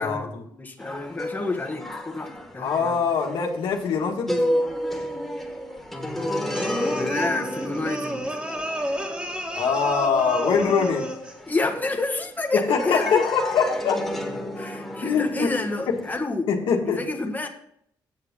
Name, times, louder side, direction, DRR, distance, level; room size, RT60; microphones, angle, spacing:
voice 1, 0.0-0.4 2.6-4.3 9.5-11.1 12.5-14.0 15.0-15.5 15.9-16.0 16.5-17.0, left 6 dB, 85° left, 1 dB, 1.9 m, -23 dB
voice 2, 0.6-3.0 6.9-8.4 11.5-13.2 14.5-16.5 16.8-17.5, left 2 dB, 20° left, 3 dB, 1.6 m, -29 dB
sound 1, 0.8-12.4 12.8-16.1, equal, ahead, 2.2 m, -32 dB
sound 2, 6.5-11.4, equal, 15° right, 2.1 m, -30 dB
9.2 x 7.3 x 5.5 m, 0.69 s
cardioid pair, 75°, 9 cm